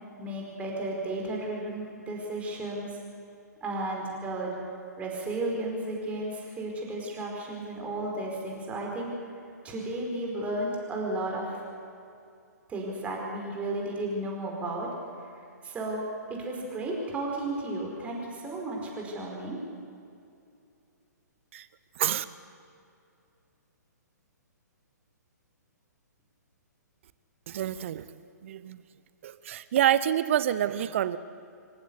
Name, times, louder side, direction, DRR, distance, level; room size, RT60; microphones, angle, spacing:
voice 1, 0.2-3.0 3.6-4.5 5.0-9.1 9.6-11.6 12.7-14.9 15.2-15.3 15.6-16.0 16.3-19.6, right 2 dB, 15° right, -1 dB, 4.9 m, -33 dB
voice 2, 27.5-28.1 28.4-28.8 29.2-31.2, right 11 dB, 45° right, 15 dB, 0.8 m, -27 dB
26.0 x 15.0 x 8.4 m, 2.5 s
figure-of-eight pair, 125°, 10 cm